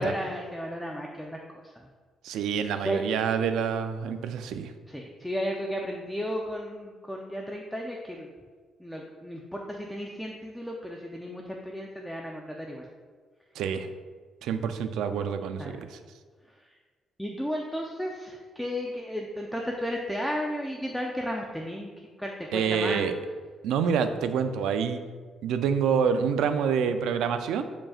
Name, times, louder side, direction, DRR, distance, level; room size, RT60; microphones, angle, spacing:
voice 1, 0.0-1.4 1.7-1.8 2.8-3.0 4.9-8.3 8.8-12.9 15.6-15.9 17.2-21.9 22.2-23.1, equal, 5° left, 0 dB, 0.6 m, -34 dB
voice 2, 2.2-4.7 13.6-13.9 14.4-16.0 22.5-23.1 23.6-25.0 25.4-27.6, right 7 dB, 85° right, 9 dB, 0.4 m, -27 dB
8.4 x 5.2 x 2.4 m, 1.5 s
cardioid pair, 90°, 0 cm